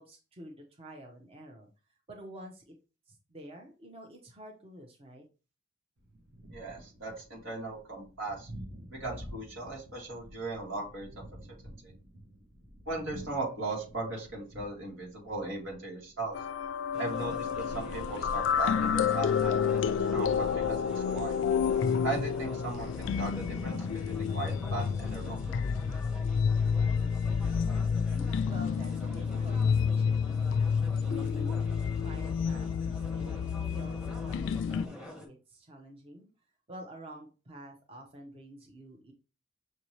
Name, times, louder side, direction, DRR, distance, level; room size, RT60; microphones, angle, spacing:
voice 1, 0.0-1.7 2.1-2.7 3.1-5.3 27.4-30.6 31.0-31.5 32.0-36.3 36.7-39.1, right 1 dB, 30° right, 1 dB, 0.6 m, -49 dB
Thunder, 6.0-21.3, equal, 65° right, 1.1 m, -51 dB
voice 2, 6.5-8.5 8.9-11.1 11.8-11.9 12.9-16.4 17.0-19.9 20.1-21.4 22.0-25.6, right 2 dB, 85° right, -2 dB, 2.0 m, -38 dB
sound 1, 16.3-34.9, left 6 dB, 70° left, 0.3 m, -29 dB
sound 2, 16.9-35.3, left 1 dB, 5° right, 0.9 m, -47 dB
6.2 x 2.7 x 3.0 m, 0.33 s
head